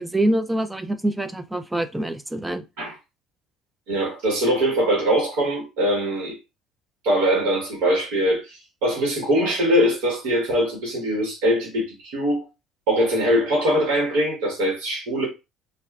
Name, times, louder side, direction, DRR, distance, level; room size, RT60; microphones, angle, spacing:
voice 1, 0.0-2.6, right 1 dB, 10° right, 0.4 m, -25 dB
voice 2, 3.9-6.4 7.0-12.5 12.9-15.3, equal, 75° right, 1.2 m, -22 dB
2.4 x 2.3 x 3.2 m
hypercardioid pair, 65°, 0 cm